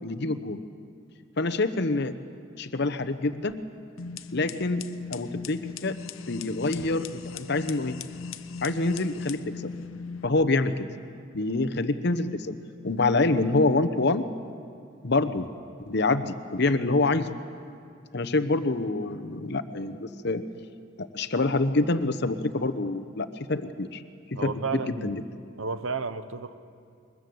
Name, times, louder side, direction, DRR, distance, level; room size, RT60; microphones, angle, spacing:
voice 1, 0.0-0.6 1.4-2.1 2.6-3.6 4.3-4.8 5.1-6.0 6.3-8.0 8.6-9.7 10.2-10.9 11.3-12.6 12.8-14.2 15.0-15.5 15.9-17.3 18.1-20.4 21.0-24.0 24.3-25.2, left 2 dB, 55° left, 9 dB, 0.9 m, -26 dB
sound 1, 4.0-10.3, left 5 dB, 85° left, 0.8 m, -39 dB
voice 2, 24.3-25.2 25.6-26.6, right 4 dB, 85° right, 12 dB, 1.0 m, -32 dB
22.0 x 20.5 x 7.9 m, 2.3 s
head